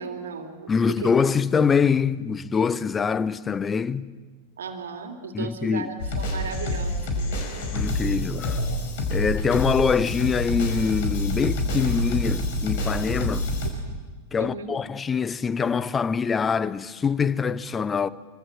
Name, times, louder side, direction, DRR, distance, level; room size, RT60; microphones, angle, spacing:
voice 1, 0.0-1.1 4.6-7.4 14.4-14.8, right 5 dB, 65° right, 3.0 m, -36 dB
voice 2, 0.7-4.1 5.3-5.9 7.7-8.6 9.1-13.5 14.3-18.1, left 6 dB, 20° left, 0.8 m, -24 dB
sound 1, 6.0-13.7, left 1 dB, 50° left, 5.0 m, -27 dB
26.0 x 24.5 x 7.4 m
figure-of-eight pair, 90°, 0 cm